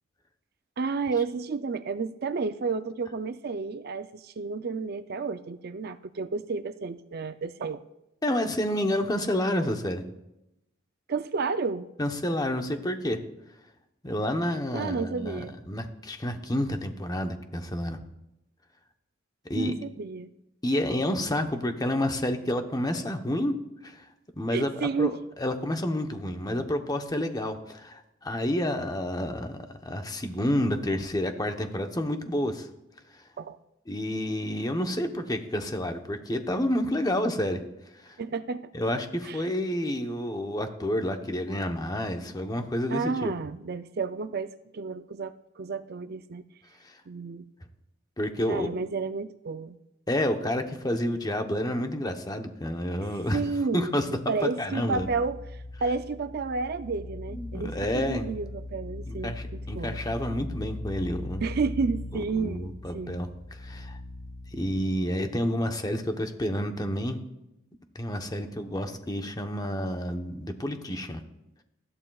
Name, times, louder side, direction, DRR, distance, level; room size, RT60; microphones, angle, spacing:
voice 1, 0.8-7.8 11.1-11.9 14.7-15.5 19.6-20.3 24.5-25.2 33.4-33.6 38.2-38.7 39.3-39.4 42.9-46.4 47.1-47.4 48.5-49.8 53.3-55.4 55.8-59.3 59.7-60.0 61.4-62.7 62.9-63.2, right 4 dB, 50° right, 11 dB, 0.4 m, -31 dB
voice 2, 8.2-10.0 12.0-13.2 14.0-18.0 19.5-19.7 20.6-23.5 23.8-24.1 24.4-32.7 33.1-33.2 33.9-37.6 37.9-38.2 38.7-43.3 46.8-47.0 48.2-48.7 50.1-53.4 53.7-55.1 57.3-58.3 59.1-61.4 62.1-64.0 64.5-67.2 67.9-71.2, left 1 dB, 20° left, 6 dB, 0.9 m, -29 dB
sound 1, 54.9-64.8, left 2 dB, 50° left, 3.4 m, -39 dB
19.5 x 14.0 x 2.4 m, 0.89 s
head